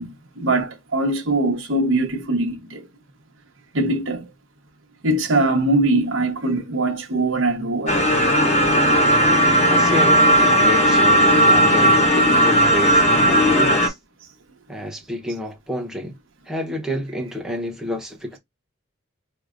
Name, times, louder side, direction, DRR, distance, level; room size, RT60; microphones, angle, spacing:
voice 1, 0.0-2.9 3.7-4.3 5.0-8.0, right 2 dB, 65° right, 1.0 m, -22 dB
sound 1, 7.9-13.9, equal, 35° left, 0.7 m, -16 dB
voice 2, 9.7-12.1 12.4-14.0 14.7-16.2 16.5-18.4, equal, 5° right, 0.8 m, -29 dB
4.8 x 2.1 x 2.5 m
head